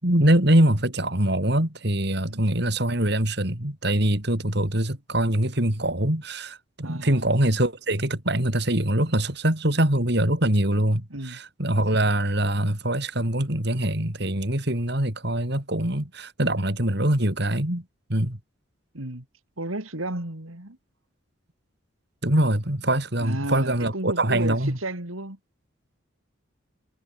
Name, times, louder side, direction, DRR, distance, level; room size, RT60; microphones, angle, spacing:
voice 1, 0.0-17.8 18.1-18.4 22.2-24.8, right 1 dB, 55° right, 3.8 m, -23 dB
voice 2, 6.8-7.2 11.1-11.4 18.9-19.3 19.6-20.8 23.2-25.4, right 1 dB, 85° right, 4.0 m, -33 dB
head